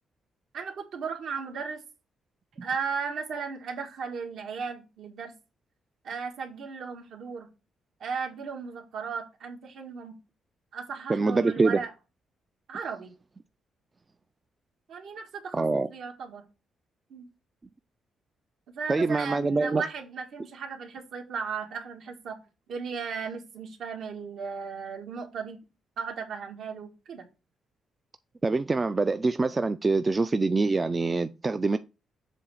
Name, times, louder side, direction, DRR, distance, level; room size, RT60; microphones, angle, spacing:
voice 1, 0.5-1.8 2.6-5.3 6.0-7.5 8.0-10.1 10.7-11.9 12.7-13.1 14.9-16.4 17.1-17.3 18.7-22.4 22.7-25.6 26.0-27.3, right 5 dB, 65° right, 1.7 m, -36 dB
voice 2, 11.1-11.8 15.5-15.9 18.9-19.8 28.4-31.8, right 3 dB, 20° right, 0.3 m, -25 dB
7.6 x 3.2 x 6.2 m
cardioid pair, 140°, 0 cm